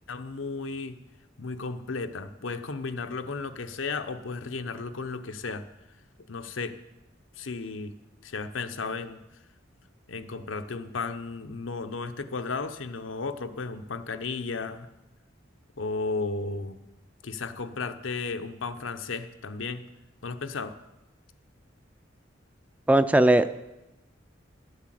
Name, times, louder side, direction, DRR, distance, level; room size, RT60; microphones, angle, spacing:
voice 1, 0.1-1.0 1.4-5.7 6.3-6.8 7.4-7.9 8.2-9.2 10.1-14.9 15.8-16.8 17.2-19.8 20.2-20.8, left 4 dB, 90° left, 9 dB, 0.8 m, -34 dB
voice 2, 22.9-23.5, right 1 dB, 5° right, 12 dB, 0.3 m, -19 dB
11.0 x 8.1 x 7.6 m, 0.99 s
head